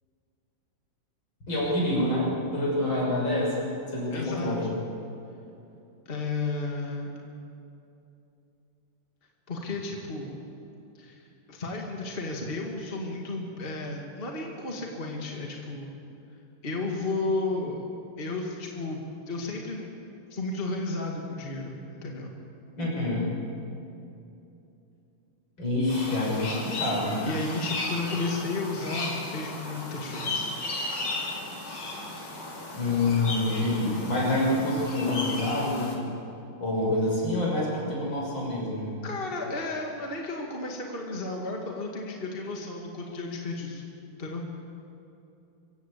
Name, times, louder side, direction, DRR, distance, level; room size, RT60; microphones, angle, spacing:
voice 1, 1.5-4.7 22.8-23.3 25.6-27.2 32.7-36.1 36.6-39.0, left 1 dB, 65° left, -4 dB, 7.3 m, -27 dB
voice 2, 4.1-4.8 6.1-7.1 9.5-10.4 10.9-15.9 16.6-17.9 18.2-19.9 20.3-21.7 22.0-22.3 27.3-30.5 39.0-43.8 44.1-44.5, left 2 dB, 25° left, 0 dB, 2.2 m, -33 dB
sound 1, 25.9-36.0, left 2 dB, 80° left, 3.7 m, -35 dB
25.5 x 15.5 x 8.4 m, 2.8 s
omnidirectional pair, 2.3 m